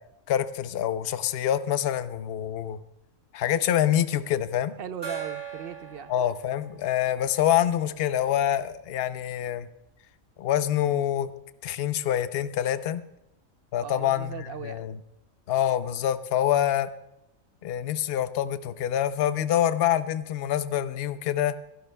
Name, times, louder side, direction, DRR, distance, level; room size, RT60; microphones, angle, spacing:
voice 1, 0.3-2.8 3.3-4.7 6.1-9.7 10.4-11.3 11.6-13.0 13.7-15.0 15.5-16.9 17.6-21.5, left 11 dB, 55° left, 12 dB, 0.8 m, -26 dB
voice 2, 4.8-6.1 13.8-14.8, right 8 dB, 55° right, 11 dB, 0.8 m, -38 dB
Gong, 5.0-8.3, right 7 dB, 30° left, 6.5 m, -41 dB
27.5 x 11.5 x 2.3 m, 0.86 s
omnidirectional pair, 1.4 m